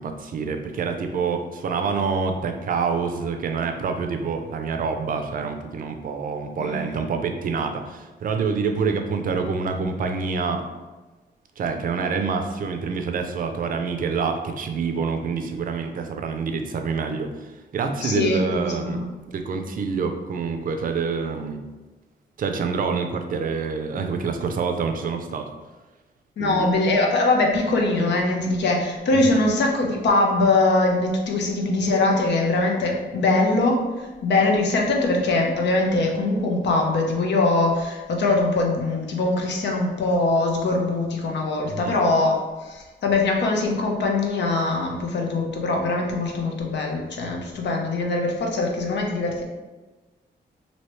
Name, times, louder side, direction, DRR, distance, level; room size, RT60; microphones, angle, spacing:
voice 1, 0.0-10.7 11.6-19.0 19.3-21.6 22.4-25.5 26.4-26.8 29.1-29.4 41.7-42.0, right 5 dB, 50° right, 6 dB, 0.4 m, -27 dB
voice 2, 18.0-19.1 26.4-49.4, left 2 dB, 80° left, 1 dB, 0.6 m, -22 dB
3.1 x 2.7 x 3.0 m, 1.2 s
wide cardioid pair, 125°, 18 cm